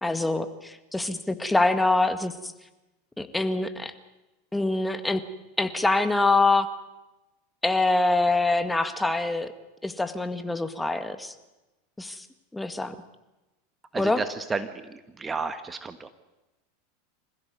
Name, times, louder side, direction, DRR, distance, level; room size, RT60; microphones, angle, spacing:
voice 1, 0.0-2.5 3.2-3.9 4.5-5.2 5.6-6.7 7.6-9.5 9.8-11.3 12.0-12.3 12.5-13.0 14.0-14.2, left 2 dB, 10° left, 10 dB, 1.9 m, -25 dB
voice 2, 13.9-16.1, right 4 dB, 20° right, 10 dB, 1.5 m, -32 dB
26.5 x 16.0 x 9.5 m, 1.0 s
hypercardioid pair, 95°, 0 cm